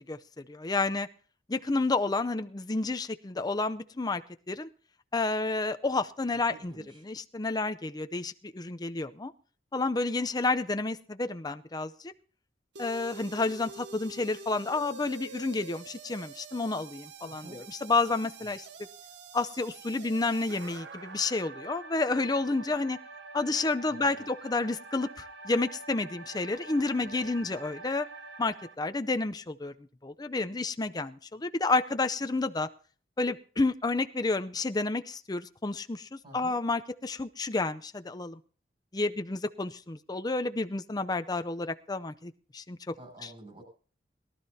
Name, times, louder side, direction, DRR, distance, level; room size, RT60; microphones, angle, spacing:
voice 1, 0.1-1.1 1.5-4.2 4.5-4.7 5.1-6.7 7.0-9.3 9.7-12.1 12.8-18.7 19.3-23.0 23.3-28.1 28.4-29.7 30.0-32.7 33.2-38.4 38.9-42.8, left 3 dB, 20° left, 10 dB, 0.6 m, -30 dB
voice 2, 6.5-7.1 17.2-17.6 18.4-18.5 23.9-24.3 36.2-36.6 43.0-43.6, right 1 dB, 30° right, 2 dB, 7.2 m, -49 dB
sound 1, 12.7-28.7, right 3 dB, 70° right, 0.8 m, -46 dB
21.5 x 12.5 x 2.8 m, 0.41 s
head